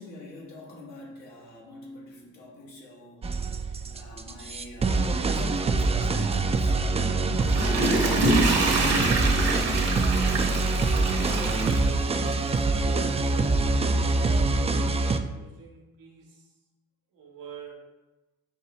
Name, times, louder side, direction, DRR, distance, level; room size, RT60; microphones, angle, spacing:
voice 1, 0.0-3.2 3.9-7.2 8.0-11.0, left 1 dB, 85° left, -4 dB, 1.3 m, -42 dB
sound 1, 3.2-15.2, right 3 dB, 20° right, 0.3 m, -25 dB
Water / Toilet flush, 7.2-12.5 13.0-13.1, right 2 dB, 50° right, 1.0 m, -26 dB
voice 2, 12.8-14.6 15.3-16.4 17.1-17.8, right 4 dB, 75° right, 0 dB, 1.0 m, -44 dB
5.5 x 2.7 x 3.0 m, 1.1 s
hypercardioid pair, 45°, 34 cm